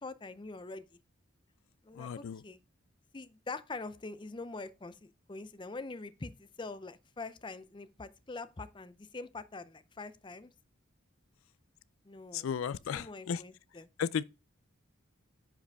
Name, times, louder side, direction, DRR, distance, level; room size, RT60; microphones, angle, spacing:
voice 1, 0.0-0.8 1.8-2.6 3.1-10.5 12.0-12.5 12.9-13.9, left 3 dB, 25° left, 0.5 m, -44 dB
voice 2, 2.0-2.4 12.3-13.4 14.0-14.2, left 7 dB, 80° left, 0.4 m, -34 dB
10.5 x 5.0 x 3.4 m
head